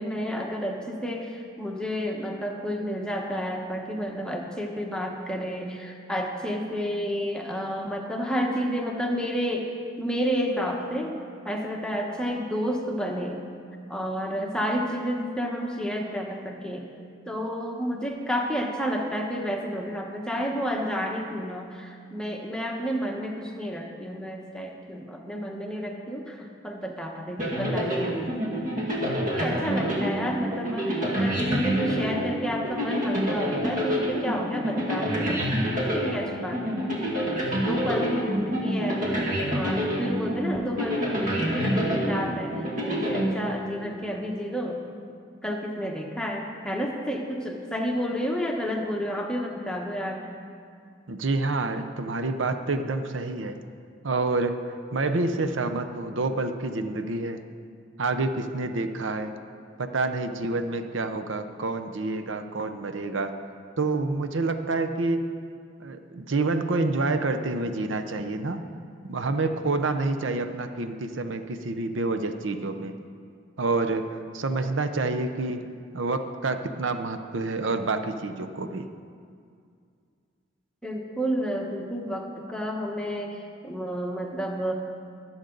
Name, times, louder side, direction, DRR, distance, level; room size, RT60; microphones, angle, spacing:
voice 1, 0.0-9.7 10.0-11.2 11.4-13.4 13.9-16.9 17.2-28.7 29.2-35.4 35.7-36.8 37.6-44.8 45.4-50.3 80.8-84.7, equal, 5° left, 0 dB, 1.2 m, -30 dB
sound 1, 27.4-44.0, equal, 40° right, 2.1 m, -27 dB
voice 2, 51.1-53.6 54.0-54.6 54.9-57.4 58.0-59.3 59.8-63.4 63.8-65.3 65.8-68.6 69.0-73.0 73.6-74.1 74.3-75.6 75.9-78.9, right 3 dB, 80° right, 8 dB, 0.7 m, -28 dB
23.0 x 7.9 x 3.9 m, 2.3 s
head